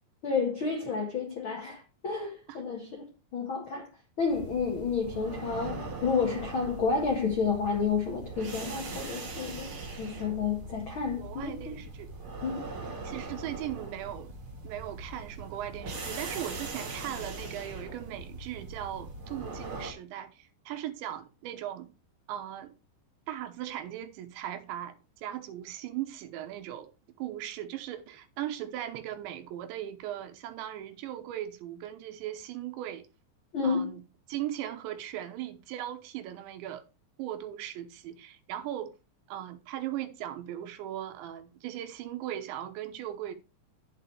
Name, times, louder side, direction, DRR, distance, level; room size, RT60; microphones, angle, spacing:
voice 1, 0.2-3.0 3.3-3.9 4.2-11.8 12.4-12.7 33.5-33.9, left 5 dB, 75° left, 1.1 m, -30 dB
sound 1, 4.3-19.9, right 3 dB, 40° right, 2.2 m, -41 dB
voice 2, 11.2-12.1 13.0-21.9 22.3-22.7 23.3-26.9 27.2-33.1 33.6-34.0 34.3-36.8 37.2-39.0 39.3-43.4, right 12 dB, 90° right, 3.3 m, -38 dB
11.0 x 7.4 x 3.3 m
omnidirectional pair, 5.1 m